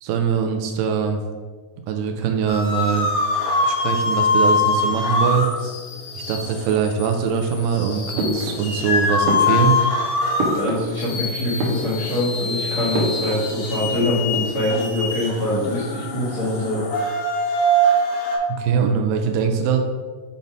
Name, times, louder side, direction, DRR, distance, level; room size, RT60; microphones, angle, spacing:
voice 1, 0.0-1.2 1.9-3.1 3.6-5.5 6.2-9.8 18.5-19.8, right 7 dB, 90° right, 4 dB, 2.3 m, -22 dB
sound 1, 2.5-18.4, left 1 dB, 85° left, 2.7 m, -23 dB
sound 2, 8.2-8.9 9.2-11.2 11.5-12.3 12.9-13.9 14.2-14.7, right 1 dB, 65° right, 2.0 m, -28 dB
voice 2, 10.5-16.8, left 1 dB, 45° left, -8 dB, 1.3 m, -24 dB
7.0 x 2.6 x 5.2 m, 1.4 s
omnidirectional pair, 3.9 m